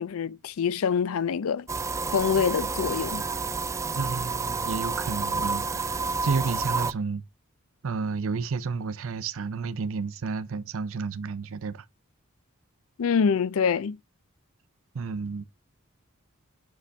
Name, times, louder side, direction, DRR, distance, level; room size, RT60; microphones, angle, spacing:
voice 1, 0.0-1.7 2.1-3.2 13.0-14.0, left 6 dB, 70° left, 0.4 m, -25 dB
sound 1, 1.7-6.9, right 4 dB, 15° right, 0.3 m, -29 dB
voice 2, 3.9-7.2 7.8-11.9 14.9-15.4, right 4 dB, 65° right, 0.5 m, -31 dB
6.5 x 4.9 x 3.3 m
head